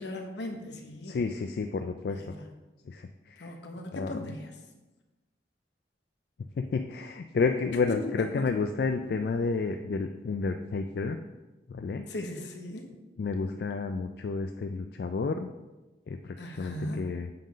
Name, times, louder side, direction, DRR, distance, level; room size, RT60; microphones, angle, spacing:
voice 1, 0.0-1.2 2.1-2.3 3.4-4.5 7.9-8.6 12.1-12.9 16.4-17.0, left 1 dB, 75° left, 4 dB, 1.0 m, -38 dB
voice 2, 1.0-2.2 2.9-3.5 3.9-4.1 6.6-11.2 11.7-12.0 13.2-15.5 16.1-17.3, left 4 dB, 60° left, 6 dB, 0.3 m, -31 dB
7.6 x 3.8 x 5.0 m, 1.1 s
head